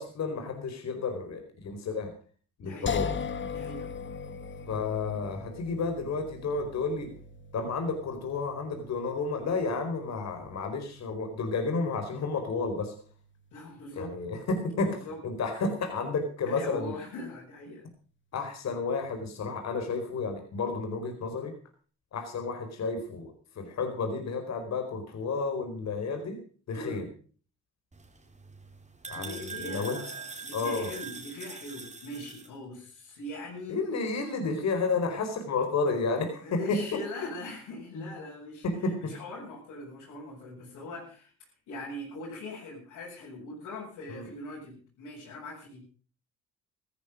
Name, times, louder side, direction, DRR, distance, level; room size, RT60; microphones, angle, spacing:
voice 1, 0.0-2.1 2.6-3.1 4.7-7.1 7.5-12.9 13.9-16.9 18.3-21.5 22.1-26.4 26.7-27.0 29.1-30.0 30.5-30.9 33.7-37.0 37.9-38.1 38.6-39.1 44.1-44.3, left 4 dB, 60° left, 5 dB, 4.5 m, -31 dB
voice 2, 2.6-3.0 3.5-3.9 13.5-14.2 15.0-15.2 16.4-17.9 26.7-27.1 29.1-33.8 36.4-38.7 39.0-41.3 41.7-45.8, left 2 dB, 85° left, -6 dB, 7.3 m, -41 dB
sound 1, 2.9-15.9, left 6 dB, 40° left, 1.5 m, -41 dB
sound 2, 27.9-32.5, right 5 dB, 25° right, 3.4 m, -43 dB
15.5 x 14.0 x 5.1 m, 0.40 s
cardioid pair, 90°, 30 cm